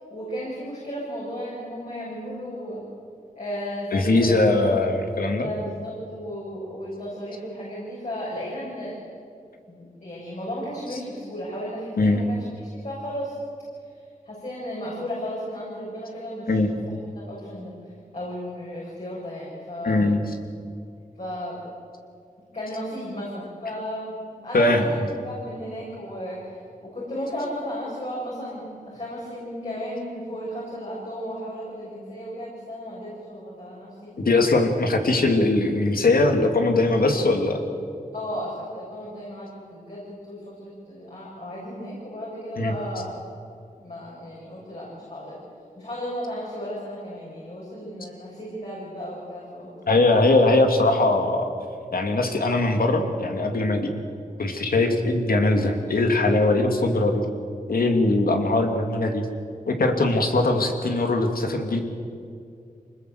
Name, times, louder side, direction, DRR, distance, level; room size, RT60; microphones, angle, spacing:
voice 1, 0.1-2.8 3.4-4.4 5.1-9.0 9.7-12.5 12.8-13.3 14.3-16.7 17.2-17.7 18.1-20.1 21.2-21.6 22.5-25.0 25.2-34.1 38.1-43.1 43.7-45.4 45.8-50.2, equal, 50° left, -6 dB, 7.4 m, -34 dB
voice 2, 3.9-5.5 12.0-12.2 16.5-16.7 19.8-20.2 24.5-24.8 34.2-37.6 42.6-42.7 49.9-51.5 51.9-53.9 54.4-57.2 57.7-59.3 59.7-61.8, left 2 dB, 80° left, 4 dB, 2.6 m, -21 dB
25.0 x 20.0 x 8.0 m, 2.4 s
wide cardioid pair, 75°, 15 cm